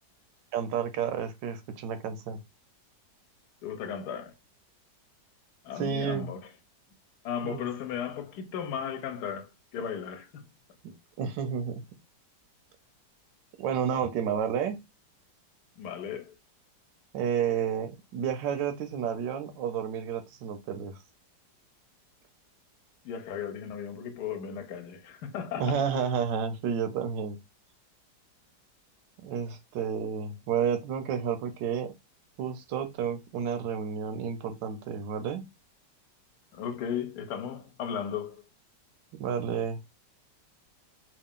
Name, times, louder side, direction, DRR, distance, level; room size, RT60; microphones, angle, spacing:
voice 1, 0.5-2.4 5.7-6.3 7.4-7.7 10.8-11.8 13.6-14.8 17.1-20.9 25.6-27.4 29.2-31.9 32.4-35.5 39.1-39.8, right 7 dB, 90° right, 1.3 m, -31 dB
voice 2, 3.6-4.3 5.6-6.4 7.2-10.4 15.8-16.3 23.0-25.8 36.5-38.4, left 8 dB, 70° left, 1.2 m, -35 dB
3.3 x 2.4 x 3.6 m
omnidirectional pair, 1.9 m